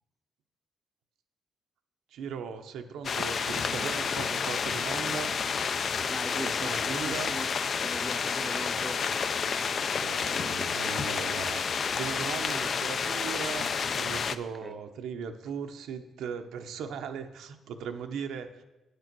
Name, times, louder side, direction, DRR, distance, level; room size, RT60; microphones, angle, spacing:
voice 1, 2.1-5.3 6.3-7.4 9.7-11.6 11.9-18.6, right 6 dB, 85° right, 6 dB, 0.8 m, -38 dB
sound 1, 3.0-14.4, left 6 dB, 45° left, 0.4 m, -30 dB
voice 2, 6.1-7.5 7.8-9.1 14.6-14.7, right 1 dB, 5° right, 7 dB, 0.6 m, -40 dB
9.4 x 6.7 x 6.0 m, 1.0 s
cardioid pair, 130°, 0 cm